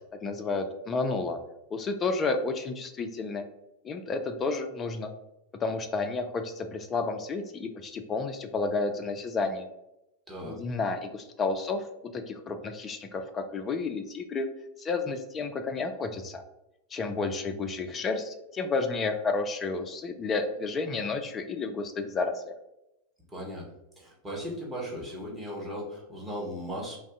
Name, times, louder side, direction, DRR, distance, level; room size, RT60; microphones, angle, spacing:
voice 1, 0.2-1.4 1.7-3.4 3.8-5.1 5.6-9.7 10.4-11.8 12.1-14.5 14.8-16.4 16.9-22.4, left 3 dB, 25° left, 6 dB, 0.3 m, -31 dB
voice 2, 10.3-10.6 23.3-23.7 24.0-27.0, equal, 15° right, -4 dB, 1.0 m, -37 dB
2.5 x 2.3 x 3.5 m, 0.88 s
figure-of-eight pair, 90°, 0 cm